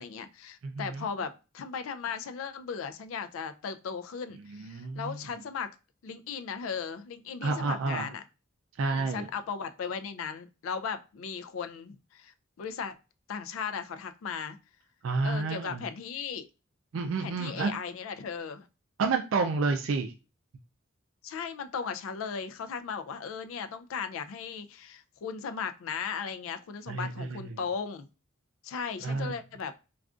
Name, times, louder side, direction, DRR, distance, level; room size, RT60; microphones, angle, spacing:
voice 1, 0.0-5.7 6.0-8.2 8.8-13.0 13.3-14.6 15.2-16.5 17.2-18.7 21.2-28.1 28.6-29.7, left 6 dB, 85° left, 10 dB, 0.4 m, -37 dB
voice 2, 0.6-1.1 4.6-5.2 7.4-8.1 8.8-9.3 15.0-15.8 16.9-17.7 19.0-20.1 26.9-27.5 29.0-29.3, right 4 dB, 70° right, 5 dB, 0.4 m, -30 dB
3.6 x 2.4 x 2.3 m, 0.31 s
head